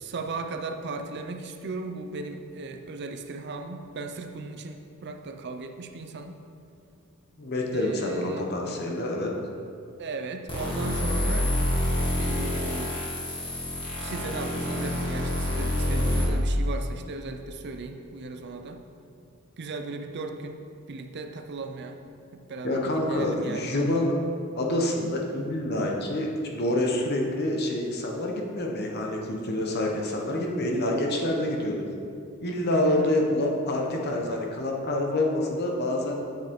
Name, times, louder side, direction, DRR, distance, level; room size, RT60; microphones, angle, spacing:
voice 1, 0.0-6.4 7.7-8.5 10.0-11.5 12.2-13.0 14.0-18.8 19.6-20.6 20.9-22.0 22.3-24.0 32.7-33.1, right 3 dB, 55° right, 5 dB, 0.5 m, -37 dB
voice 2, 7.4-9.3 22.6-24.1 24.6-31.8 32.4-36.2, left 1 dB, 50° left, 0 dB, 1.0 m, -27 dB
sound 1, 10.5-16.2, left 1 dB, 25° left, 1.7 m, -27 dB
7.7 x 7.2 x 3.7 m, 2.5 s
head